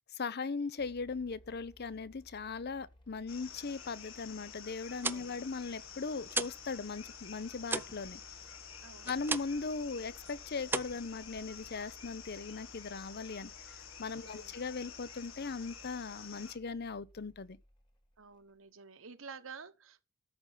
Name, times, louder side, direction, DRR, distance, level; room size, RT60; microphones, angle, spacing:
voice 1, 0.1-8.2 9.0-17.6, left 4 dB, 50° left, 0.7 m, -39 dB
sound 1, 0.8-18.5, left 1 dB, 25° left, 2.0 m, -61 dB
sound 2, 3.3-16.6, left 7 dB, 75° left, 1.8 m, -50 dB
sound 3, 4.8-6.7 7.0-9.7 10.0-10.3 10.6-11.7, right 3 dB, 10° right, 0.5 m, -38 dB
voice 2, 5.0-5.4 8.8-9.1 14.2-14.5 18.2-20.0, right 5 dB, 80° right, 1.2 m, -50 dB
13.0 x 5.4 x 5.7 m
head